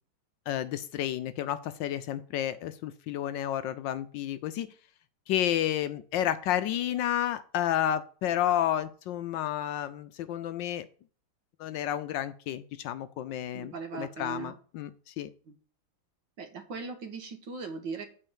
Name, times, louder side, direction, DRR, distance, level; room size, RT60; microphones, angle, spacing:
voice 1, 0.5-4.7 5.3-10.9 11.6-15.3, left 11 dB, 75° left, 12 dB, 1.2 m, -31 dB
voice 2, 13.5-14.5 15.5-15.6 16.4-18.1, right 4 dB, 65° right, 6 dB, 2.0 m, -39 dB
8.8 x 4.4 x 7.2 m, 0.42 s
omnidirectional pair, 2.2 m